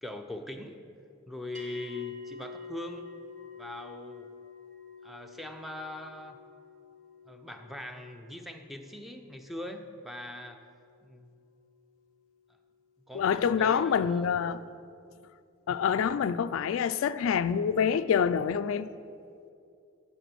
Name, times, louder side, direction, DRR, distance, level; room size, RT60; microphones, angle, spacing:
voice 1, 0.0-0.9 1.3-3.1 3.6-4.3 5.0-6.4 7.3-10.6 11.0-11.4 13.1-14.4, left 1 dB, ahead, 0.5 m, -41 dB
sound 1, 1.5-12.1, left 6 dB, 40° right, 1.0 m, -49 dB
voice 2, 13.1-14.6 15.7-18.9, left 7 dB, 80° left, 0.3 m, -26 dB
8.1 x 6.8 x 7.5 m
head